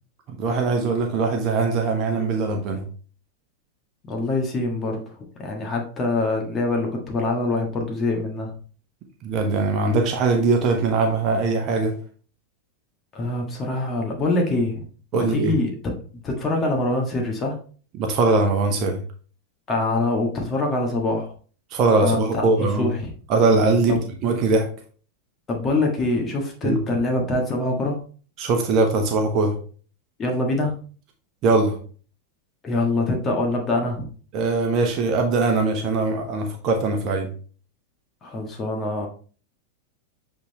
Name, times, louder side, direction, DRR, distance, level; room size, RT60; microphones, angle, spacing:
voice 1, 0.3-2.8 9.2-11.9 15.1-15.5 17.9-19.0 21.7-22.9 23.3-24.0 24.2-24.7 26.6-26.8 28.4-29.5 31.4-31.7 34.3-37.3, right 3 dB, 35° right, 4 dB, 1.1 m, -21 dB
voice 2, 4.0-5.0 5.4-8.5 13.1-14.9 15.1-15.8 16.2-17.5 19.7-21.3 22.0-23.0 23.9-24.0 25.5-28.0 30.2-30.7 32.6-34.1 38.2-39.1, left 2 dB, 25° left, 1 dB, 1.5 m, -24 dB
8.1 x 3.8 x 3.1 m, 0.41 s
figure-of-eight pair, 90°, 0 cm